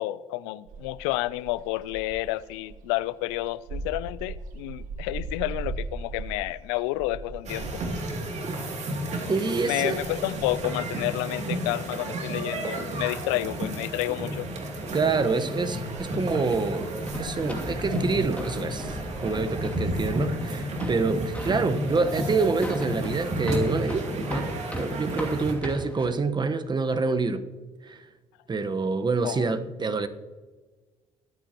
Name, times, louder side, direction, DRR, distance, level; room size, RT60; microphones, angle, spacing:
voice 1, 0.0-7.8 9.7-14.5 29.2-29.5, left 18 dB, 85° left, 0.4 m, -30 dB
sound 1, 0.7-12.3 12.5-13.9 14.1-20.3, right 3 dB, 75° right, 1.3 m, -41 dB
sound 2, 7.4-25.5, right 1 dB, 50° right, 2.7 m, -32 dB
voice 2, 9.3-10.0 14.9-16.9 17.1-18.9 19.2-24.5 24.8-27.4 27.8-28.0 28.5-30.1, right 4 dB, 30° right, 1.2 m, -27 dB
sound 3, 16.3-26.1, left 1 dB, 10° left, 2.5 m, -39 dB
22.5 x 8.7 x 3.0 m
hypercardioid pair, 60°, 14 cm